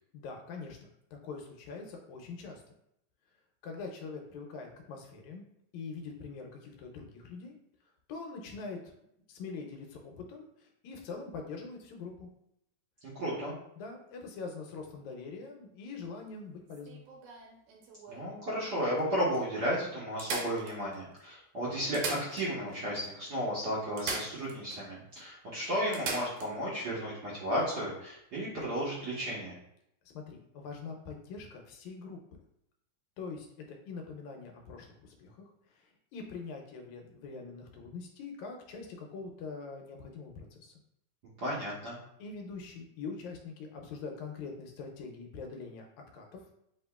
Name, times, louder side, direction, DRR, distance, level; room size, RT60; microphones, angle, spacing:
voice 1, 0.1-2.6 3.6-5.5 5.7-7.6 7.8-8.9 9.3-12.3 13.8-17.1 30.1-32.2 33.2-40.8 42.2-45.9 46.1-46.5, left 4 dB, 85° left, 2 dB, 2.0 m, -43 dB
voice 2, 13.1-13.5 18.1-29.6 41.4-42.0, equal, 70° right, -8 dB, 0.9 m, -33 dB
sound 1, 16.7-18.3 19.0-19.1 19.3-19.4 20.2-21.2 21.8-22.8 23.0-23.1 24.0-24.8 25.2-25.3 25.9-26.5 28.5-28.6, right 4 dB, 90° right, 2.3 m, -39 dB
7.5 x 2.8 x 2.3 m, 0.77 s
omnidirectional pair, 3.4 m